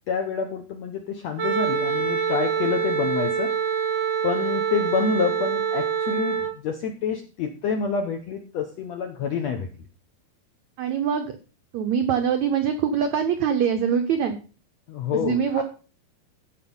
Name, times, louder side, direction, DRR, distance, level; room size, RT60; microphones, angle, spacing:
voice 1, 0.1-3.5 4.2-9.7 14.9-15.6, left 6 dB, 75° left, 4 dB, 1.6 m, -27 dB
Wind instrument woodwind instrument, 1.4-6.5, right 7 dB, 65° right, 1.2 m, -25 dB
voice 2, 10.8-11.3 11.7-14.4 15.1-15.6, right 7 dB, 80° right, 6 dB, 1.6 m, -23 dB
14.5 x 5.1 x 5.4 m, 0.37 s
omnidirectional pair, 4.3 m